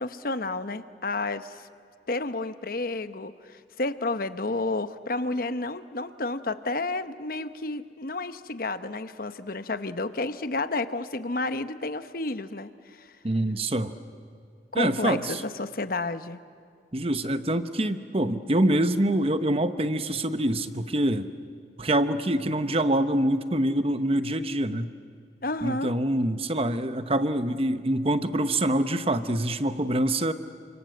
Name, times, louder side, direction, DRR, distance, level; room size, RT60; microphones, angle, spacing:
voice 1, 0.0-1.6 2.1-13.1 14.7-16.4 25.4-25.9, left 2 dB, 50° left, 11 dB, 1.0 m, -31 dB
voice 2, 13.2-13.9 14.7-15.4 16.9-21.3 21.8-24.9 25.6-30.3, right 1 dB, 30° right, 10 dB, 1.0 m, -25 dB
29.5 x 26.0 x 7.8 m, 2.3 s
head